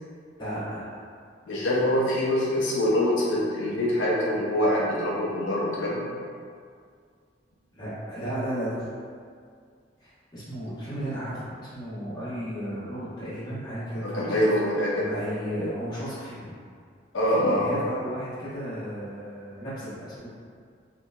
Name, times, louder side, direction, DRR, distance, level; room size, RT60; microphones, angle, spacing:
voice 1, 0.4-0.9 7.7-8.9 10.0-14.5 15.0-16.5 17.4-20.3, equal, 25° left, -12 dB, 0.9 m, -34 dB
voice 2, 1.5-6.1 14.0-15.1 17.1-17.8, left 1 dB, 85° left, -5 dB, 0.5 m, -24 dB
2.7 x 2.2 x 2.2 m, 2.1 s
head